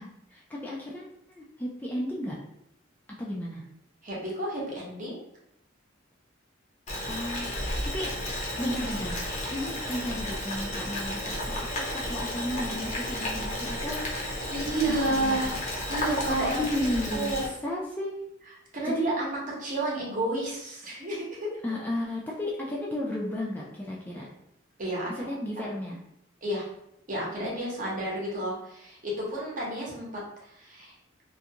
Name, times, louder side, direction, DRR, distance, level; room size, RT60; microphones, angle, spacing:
voice 1, 0.0-2.4 3.2-3.6 7.1-8.1 8.6-14.4 14.9-15.4 16.4-17.3 17.6-18.2 18.8-19.1 21.6-24.3 25.1-26.0, left 1 dB, 10° left, -4 dB, 0.3 m, -34 dB
voice 2, 4.0-5.2 14.2-15.6 15.9-16.6 17.1-17.5 18.7-21.5 24.8-25.3 25.6-25.7 26.4-26.7 27.1-30.9, right 1 dB, 40° right, -4 dB, 0.8 m, -31 dB
Boiling, 6.9-17.5, left 1 dB, 35° left, 0.7 m, -33 dB
2.4 x 2.2 x 2.7 m, 0.79 s
head